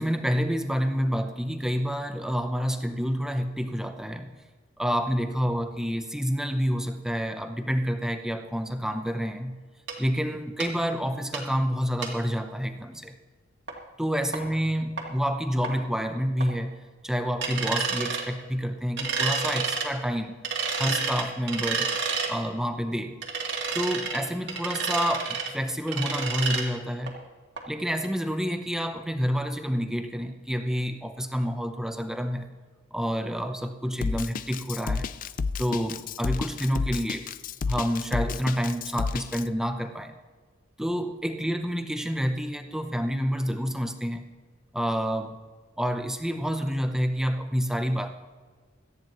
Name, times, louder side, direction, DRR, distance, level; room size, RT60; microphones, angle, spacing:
voice 1, 0.0-4.3 4.8-9.6 10.0-13.1 14.0-20.4 20.8-21.9 22.3-23.2 23.7-27.1 27.7-32.5 32.9-35.1 35.6-37.3 37.7-40.1 40.8-44.2 44.7-45.4 45.8-48.1, equal, 5° right, 6 dB, 0.7 m, -28 dB
sound 1, 9.9-10.0 10.6-10.7 11.3-11.4 12.0-12.1 13.7-13.8 14.3-14.4 15.0-15.1 15.6-15.7 16.4-16.5 17.4-18.2 19.0-19.9 20.4-22.3 23.2-24.2 24.5-25.5 25.9-26.6 27.1-27.2 27.6-27.7 28.0-28.1, right 5 dB, 65° right, 2.3 m, -29 dB
Drum kit, 34.0-39.4, left 4 dB, 45° left, 0.4 m, -30 dB
18.0 x 13.5 x 3.1 m, 1.4 s
head